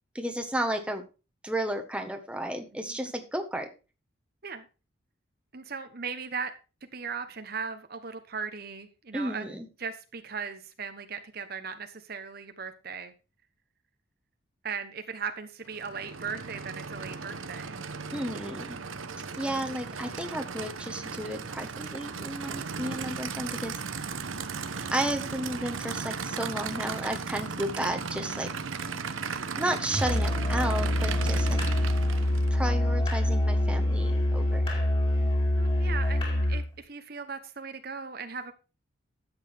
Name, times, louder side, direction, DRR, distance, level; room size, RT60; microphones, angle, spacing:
voice 1, 0.1-1.0 1.4-3.7 9.1-9.7 18.1-18.8 19.4-23.8 24.9-28.5 29.6-31.6 32.5-34.8, right 1 dB, 5° right, 1.4 m, -33 dB
voice 2, 5.5-6.5 6.9-9.5 9.8-13.1 14.6-17.8 35.1-38.5, right 5 dB, 50° right, 1.1 m, -38 dB
Aircraft / Idling, 15.7-32.6, right 5 dB, 85° right, 1.0 m, -36 dB
Musical instrument, 29.9-36.7, left 1 dB, 25° left, 4.2 m, -25 dB
12.5 x 8.1 x 3.5 m
head